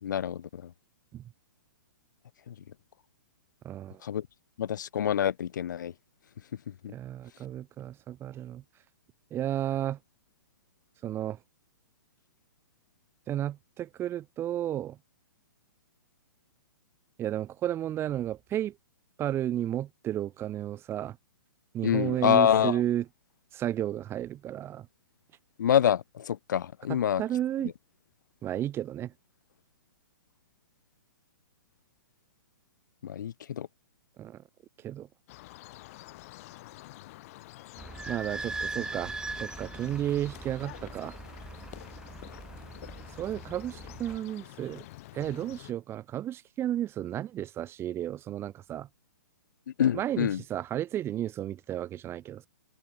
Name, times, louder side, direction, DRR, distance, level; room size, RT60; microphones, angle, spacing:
voice 1, 0.0-0.7 2.5-2.6 4.0-4.3 4.6-5.9 6.7-6.9 21.8-22.8 25.6-27.2 33.0-33.7 49.8-50.4, left 9 dB, 60° left, 0.8 m, -26 dB
voice 2, 3.6-4.0 6.9-8.6 9.3-10.0 11.0-11.4 13.3-15.0 17.2-18.7 19.2-21.2 21.7-23.0 23.5-24.9 26.9-27.7 28.4-29.1 34.2-34.4 34.8-35.1 38.1-39.1 39.4-41.2 43.2-44.8 45.1-48.9 49.9-52.5, right 12 dB, 20° right, 3.6 m, -32 dB
sound 1, 35.3-45.7, left 18 dB, 45° left, 7.1 m, -48 dB
Idling / Squeak, 37.8-44.2, right 3 dB, 5° right, 1.9 m, -40 dB
figure-of-eight pair, 120°, 11 cm